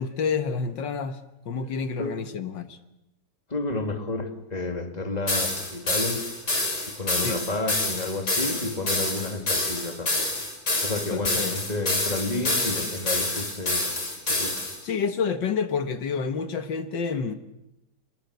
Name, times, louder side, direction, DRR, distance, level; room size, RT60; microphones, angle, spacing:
voice 1, 0.0-2.8 7.2-7.4 11.1-11.6 14.8-17.3, left 5 dB, 80° left, 9 dB, 2.1 m, -29 dB
voice 2, 3.5-6.2 7.0-10.3 10.8-14.0 14.3-14.5, left 2 dB, 20° left, 6 dB, 2.7 m, -31 dB
sound 1, 5.3-14.8, left 2 dB, 60° left, 7.6 m, -27 dB
27.0 x 21.5 x 8.3 m, 0.90 s
omnidirectional pair, 1.9 m